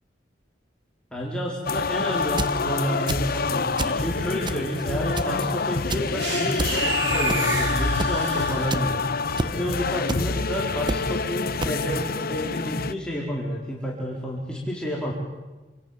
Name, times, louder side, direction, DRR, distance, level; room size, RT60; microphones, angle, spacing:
voice 1, 1.1-8.9 9.4-15.1, equal, 5° left, -4 dB, 4.4 m, -30 dB
sound 1, 1.7-12.9, left 4 dB, 55° left, 1.0 m, -27 dB
sound 2, 2.2-2.6 3.1-3.4 3.8-4.0 4.5-4.8 5.2-5.4 5.9-6.1 6.6-6.7 7.3-7.6 8.0-8.1 8.7-8.8 9.4-9.5 10.1-10.2 10.9-11.0 11.6-11.7, right 2 dB, 25° right, 1.2 m, -27 dB
sound 3, 6.2-9.1, right 3 dB, 80° right, 4.3 m, -29 dB
28.0 x 27.5 x 7.4 m, 1.2 s
head